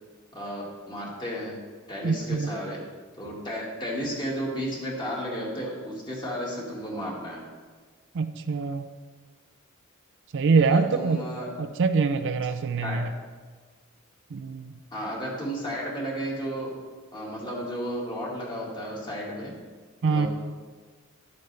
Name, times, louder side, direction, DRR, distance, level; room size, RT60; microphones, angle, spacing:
voice 1, 0.3-1.6 1.9-2.8 3.2-7.4 10.6-11.5 12.8-13.0 14.9-16.7 17.1-19.6 20.0-20.3, equal, 20° left, -3 dB, 2.0 m, -33 dB
voice 2, 2.0-2.5 8.1-8.8 10.3-11.2 11.6-13.1 14.3-14.7 20.0-20.3, right 4 dB, 60° right, 8 dB, 0.4 m, -24 dB
11.0 x 8.1 x 3.3 m, 1.4 s
head